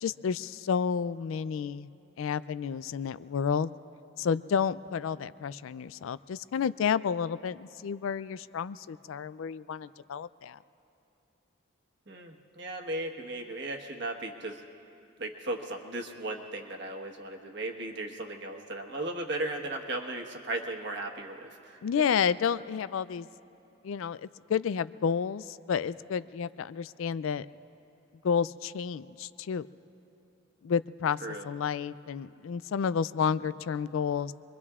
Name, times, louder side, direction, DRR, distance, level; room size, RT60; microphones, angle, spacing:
voice 1, 0.0-1.9 2.2-3.7 4.2-10.6 21.8-23.3 23.8-27.5 28.2-29.7 30.6-31.2 31.4-34.3, left 7 dB, 70° left, 16 dB, 0.3 m, -30 dB
voice 2, 12.1-14.6 15.2-21.8 31.2-31.5, right 2 dB, 55° right, 2 dB, 1.3 m, -36 dB
26.0 x 23.0 x 2.4 m, 2.7 s
head